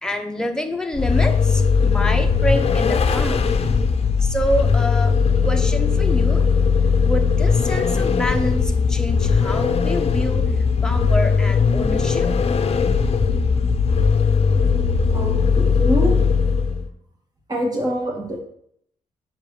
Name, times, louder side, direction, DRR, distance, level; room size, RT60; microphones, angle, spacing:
voice 1, 0.0-3.6 4.2-6.4 7.0-10.5 10.8-12.3, equal, 5° left, 4 dB, 1.0 m, -27 dB
Vehicle, 0.9-16.9, left 5 dB, 45° left, 0.7 m, -19 dB
voice 2, 15.1-16.2 17.5-18.4, equal, 25° right, 0 dB, 2.2 m, -24 dB
5.8 x 4.6 x 5.2 m, 0.70 s
cardioid pair, 70°, 14 cm